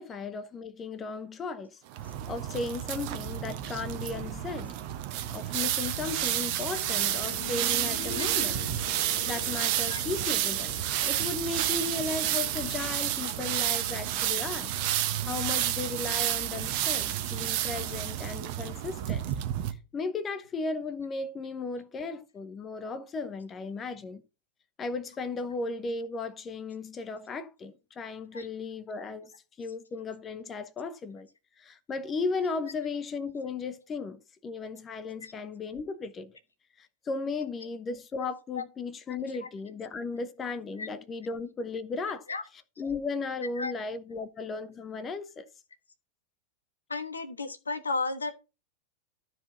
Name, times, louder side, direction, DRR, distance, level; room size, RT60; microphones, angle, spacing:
voice 1, 0.0-4.8 5.3-8.6 9.3-14.7 15.0-19.3 19.7-24.2 24.8-29.3 29.6-31.3 31.6-36.3 36.8-42.3 42.8-45.5, left 4 dB, 20° left, 1.0 m, -36 dB
sound 1, 1.9-19.7, right 12 dB, 45° right, 1.1 m, -30 dB
sound 2, 6.0-16.7 18.1-18.2, left 7 dB, 50° left, 1.2 m, -46 dB
voice 2, 46.9-48.3, left 3 dB, 75° left, 1.4 m, -33 dB
13.0 x 4.8 x 5.7 m
figure-of-eight pair, 90°, 0 cm